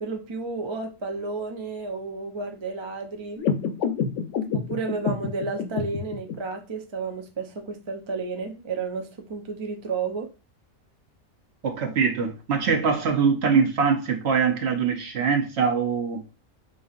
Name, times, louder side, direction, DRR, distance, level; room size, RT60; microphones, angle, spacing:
voice 1, 0.0-3.4 4.5-10.3, right 4 dB, 40° right, 0.4 m, -32 dB
sound 1, 3.4-6.3, left 6 dB, 70° left, 0.9 m, -28 dB
voice 2, 11.6-16.2, right 5 dB, 60° right, 0.9 m, -23 dB
5.1 x 2.7 x 2.4 m
omnidirectional pair, 1.4 m